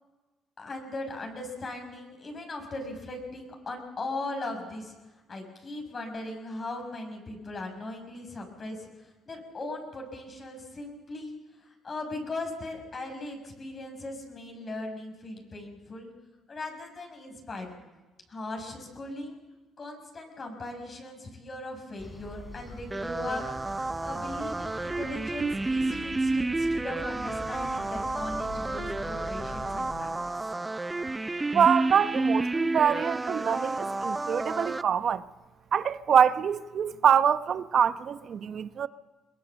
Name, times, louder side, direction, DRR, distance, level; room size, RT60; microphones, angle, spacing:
voice 1, 0.6-4.9 5.3-11.3 11.6-16.1 16.5-17.8 18.3-19.4 19.8-23.4 24.0-30.1, left 2 dB, 40° left, 6.1 m, -38 dB
sound 1, 22.0-29.9, left 1 dB, 15° left, 3.6 m, -44 dB
sound 2, 22.9-34.8, right 2 dB, 20° right, 0.6 m, -30 dB
voice 2, 31.5-35.2 35.7-38.9, right 8 dB, 55° right, 0.9 m, -25 dB
22.5 x 20.0 x 7.1 m
cardioid pair, 80°, 0 cm